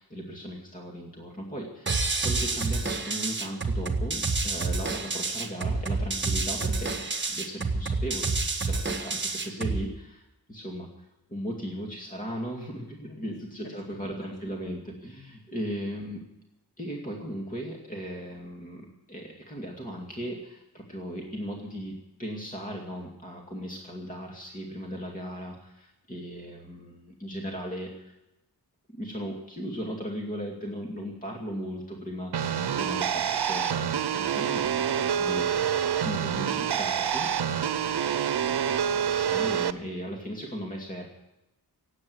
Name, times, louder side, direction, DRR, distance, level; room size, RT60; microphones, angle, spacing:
voice 1, 0.0-16.2 16.8-28.1 28.9-35.5 36.0-37.3 39.1-41.1, equal, 20° left, 0 dB, 2.4 m, -37 dB
sound 1, 1.9-9.9, right 3 dB, 30° right, 1.5 m, -28 dB
voice 2, 13.6-14.4 15.5-15.6 37.2-37.5 37.8-39.5, left 2 dB, 65° left, 0 dB, 6.9 m, -50 dB
sound 2, 32.3-39.7, right 8 dB, 85° right, 0.9 m, -27 dB
17.0 x 9.0 x 9.5 m, 0.92 s
wide cardioid pair, 150°, 38 cm